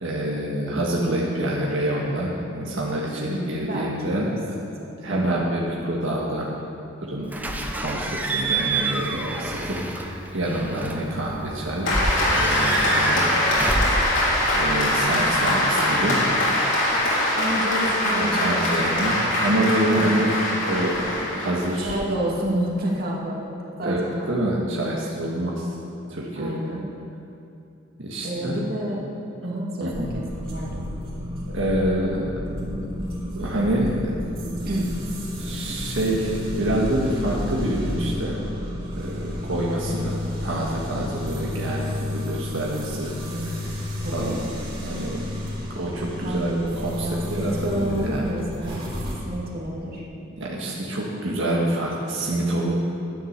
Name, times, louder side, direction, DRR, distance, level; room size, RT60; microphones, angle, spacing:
voice 1, 0.0-4.3 5.0-6.5 7.0-7.3 7.7-11.9 12.3-13.9 14.5-16.2 18.1-21.0 21.3-22.0 23.8-25.7 26.1-26.7 28.0-28.6 29.8-30.1 31.5-32.2 32.7-32.9 33.3-34.1 34.4-34.6 35.4-38.4 39.0-43.1 44.1-44.5 44.8-45.3 45.7-48.3 48.7-48.8 50.4-52.7, right 1 dB, 85° right, -3 dB, 1.7 m, -27 dB
voice 2, 3.3-4.4 4.8-5.3 15.4-15.7 17.4-18.6 19.0-19.2 21.8-24.3 26.3-26.9 28.2-29.1 29.4-30.8 34.7-34.9 43.2-44.4 46.2-46.4 47.0-48.8 49.2-50.0, right 1 dB, 50° right, -3 dB, 2.4 m, -29 dB
Slam / Squeak / Alarm, 7.3-15.3, right 2 dB, 10° right, 0.9 m, -28 dB
Applause, 11.9-21.9, left 1 dB, 75° left, 3.5 m, -23 dB
sound 1, 29.9-49.2, left 1 dB, 30° right, 3.7 m, -32 dB
11.5 x 9.9 x 6.7 m, 2.6 s
head